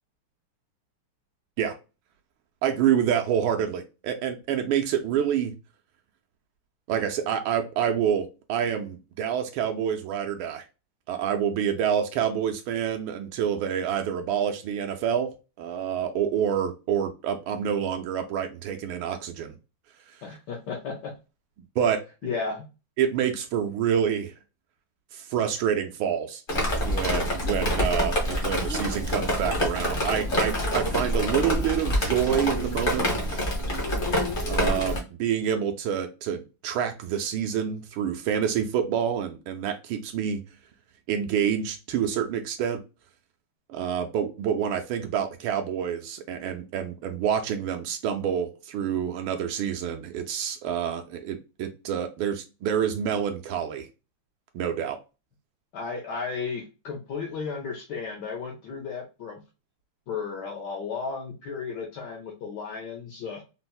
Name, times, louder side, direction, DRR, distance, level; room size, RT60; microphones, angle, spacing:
voice 1, 2.6-5.5 6.9-10.6 11.1-19.5 21.8-22.0 23.0-24.3 25.1-26.4 26.8-33.4 34.5-40.4 41.1-42.8 43.7-53.9 54.5-55.0, right 8 dB, 75° right, 5 dB, 1.3 m, -27 dB
voice 2, 20.2-21.1 22.2-22.7 55.7-59.4 60.1-63.4, left 5 dB, 70° left, 1 dB, 1.1 m, -34 dB
Drip, 26.5-35.0, equal, 45° left, 0.6 m, -26 dB
4.1 x 2.0 x 2.2 m, 0.29 s
omnidirectional pair, 2.4 m